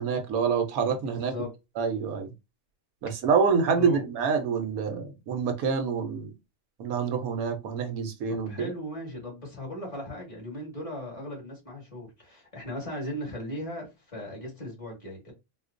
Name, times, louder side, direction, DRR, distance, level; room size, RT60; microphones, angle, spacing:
voice 1, 0.0-1.3 1.8-2.3 3.0-6.3 6.8-8.7, right 6 dB, 80° right, 1.2 m, -27 dB
voice 2, 1.0-1.5 3.7-4.0 8.3-15.3, left 1 dB, 25° left, 1.7 m, -37 dB
4.3 x 2.4 x 2.5 m
omnidirectional pair, 1.5 m